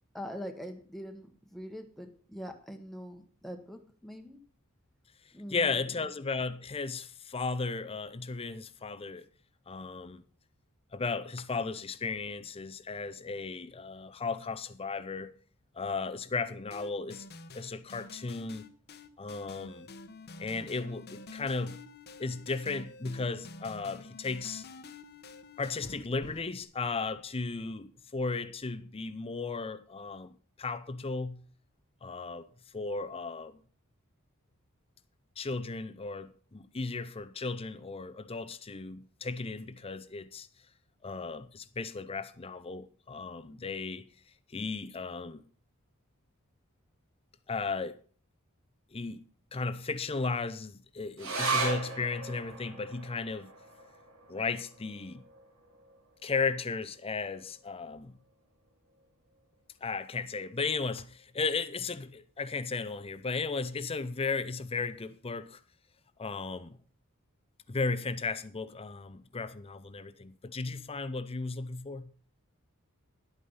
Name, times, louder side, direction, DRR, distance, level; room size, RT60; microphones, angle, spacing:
voice 1, 0.1-4.4 5.3-5.9, equal, ahead, 1.2 m, -43 dB
voice 2, 5.5-9.3 9.7-10.2 10.9-15.3 15.7-17.3 17.5-18.7 19.2-19.9 20.4-21.8 22.2-24.7 25.6-31.4 32.0-32.5 32.7-33.6 35.4-40.5 41.0-44.1 44.5-45.4 47.5-48.0 48.9-49.2 49.5-53.5 54.3-55.2 56.2-58.1 59.8-65.6 66.2-66.8 67.7-72.1, left 4 dB, 25° left, 0.6 m, -35 dB
sound 1, 16.7-26.6, left 3 dB, 50° left, 0.9 m, -48 dB
sound 2, 51.2-58.0 58.3-58.4 58.7-59.4 59.9-60.0, right 3 dB, 70° right, 3.1 m, -38 dB
11.0 x 8.5 x 5.6 m
head